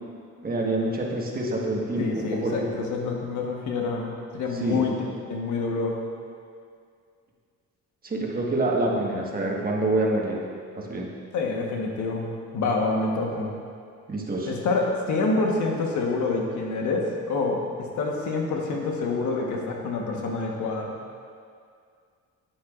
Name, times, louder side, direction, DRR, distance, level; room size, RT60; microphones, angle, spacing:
voice 1, 0.4-2.7 4.6-4.9 8.0-10.4 10.7-11.1 14.1-14.5, right 2 dB, 30° right, -2 dB, 1.5 m, -26 dB
voice 2, 2.0-5.0 5.3-6.0 11.3-12.3 12.5-13.5 14.5-20.9, left 3 dB, 75° left, 0 dB, 1.3 m, -27 dB
10.0 x 8.0 x 2.5 m, 2.2 s
cardioid pair, 90°, 30 cm